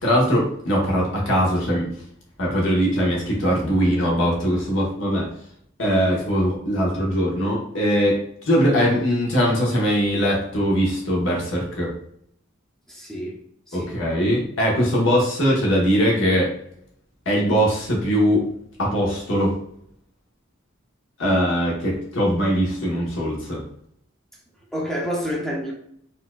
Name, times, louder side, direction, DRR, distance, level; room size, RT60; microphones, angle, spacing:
voice 1, 0.0-1.9 2.4-5.3 5.8-11.9 13.7-16.5 17.3-18.5 18.8-19.5 21.2-23.6, equal, 65° left, -2 dB, 1.0 m, -21 dB
voice 2, 12.9-13.4 13.7-14.0 24.7-25.7, equal, ahead, -3 dB, 0.6 m, -28 dB
4.2 x 2.4 x 2.2 m, 0.70 s
head